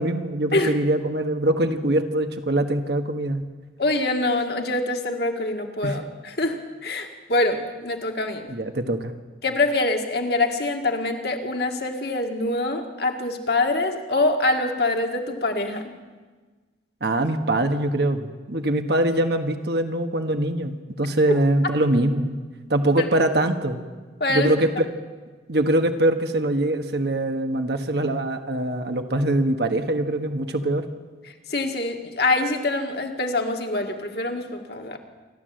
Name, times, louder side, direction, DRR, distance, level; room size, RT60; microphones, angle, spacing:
voice 1, 0.0-3.4 5.8-6.0 8.5-9.1 17.0-22.4 22.7-23.8 24.3-24.9 25.5-30.9, right 1 dB, 60° right, 6 dB, 1.4 m, -23 dB
voice 2, 3.8-6.6 6.8-8.5 9.4-15.8 24.2-24.5 31.5-35.0, left 2 dB, 55° left, 3 dB, 1.9 m, -24 dB
27.5 x 12.0 x 7.8 m, 1.4 s
head